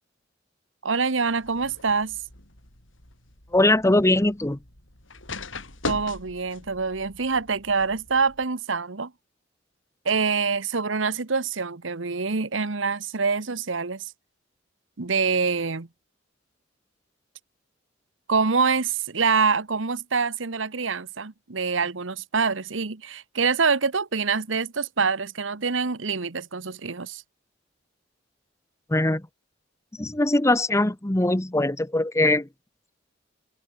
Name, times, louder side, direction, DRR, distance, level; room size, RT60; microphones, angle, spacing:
voice 1, 0.8-2.2 5.8-9.1 10.0-14.1 15.0-15.9 18.3-27.2, right 5 dB, 75° right, 1.2 m, -25 dB
sound 1, 1.3-8.4, left 3 dB, 80° left, 6.7 m, -40 dB
voice 2, 3.5-4.6 28.9-29.2 30.0-32.5, left 1 dB, 15° left, 1.0 m, -21 dB
open air
head